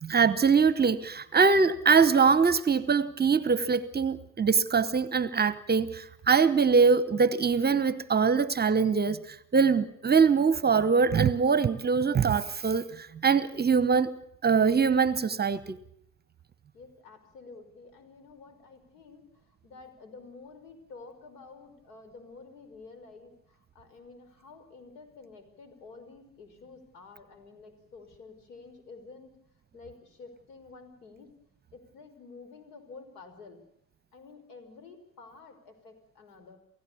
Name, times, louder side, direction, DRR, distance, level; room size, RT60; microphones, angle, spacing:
voice 1, 0.0-14.1 14.4-15.8, right 5 dB, 20° right, 1.0 m, -23 dB
voice 2, 16.7-29.4 29.7-31.3 31.7-33.6 34.1-36.6, left 4 dB, 75° left, 5.7 m, -50 dB
29.0 x 16.5 x 7.1 m
hypercardioid pair, 80°, 48 cm